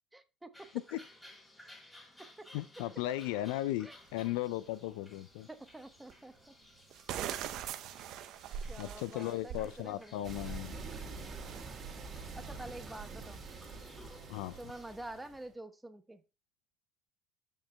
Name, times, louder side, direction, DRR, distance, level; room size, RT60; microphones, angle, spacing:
voice 1, 0.1-0.7 2.2-2.5 3.8-3.9 5.5-6.3 8.7-10.4 12.3-13.4 14.6-16.2, right 1 dB, 10° right, 1.0 m, -48 dB
sound 1, 0.5-14.9, left 1 dB, 15° left, 3.7 m, -58 dB
voice 2, 2.5-5.5 8.8-10.8 14.3-14.6, left 14 dB, 75° left, 0.4 m, -36 dB
sound 2, 4.1-4.2 6.1-6.2 6.9-9.8 10.2-10.5 11.1-11.6, right 9 dB, 60° right, 0.6 m, -41 dB
sound 3, 10.2-15.5, right 4 dB, 40° right, 2.2 m, -45 dB
12.5 x 5.3 x 2.2 m
hypercardioid pair, 70°, 0 cm